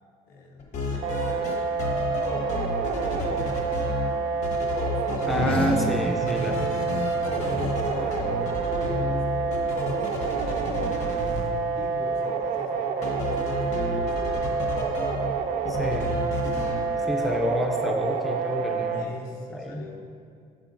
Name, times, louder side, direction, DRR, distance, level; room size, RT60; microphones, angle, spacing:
voice 1, 0.3-1.8 2.6-4.3 4.9-5.6 7.3-14.8 16.5-17.4 18.9-20.0, left 2 dB, 80° left, -1 dB, 1.1 m, -44 dB
sound 1, 0.6-4.1 4.4-6.0 6.3-11.4 13.0-15.3 15.6-16.8, left 3 dB, 55° left, 1.1 m, -31 dB
sound 2, 1.0-19.0, right 5 dB, 65° right, 0.5 m, -28 dB
sound 3, 5.2-10.0, equal, 40° left, 0.7 m, -34 dB
voice 2, 5.3-6.7 15.7-16.2 17.1-19.2 19.5-19.8, left 1 dB, ahead, 1 dB, 0.4 m, -28 dB
9.4 x 6.4 x 2.5 m, 2.3 s
cardioid pair, 175°, 14 cm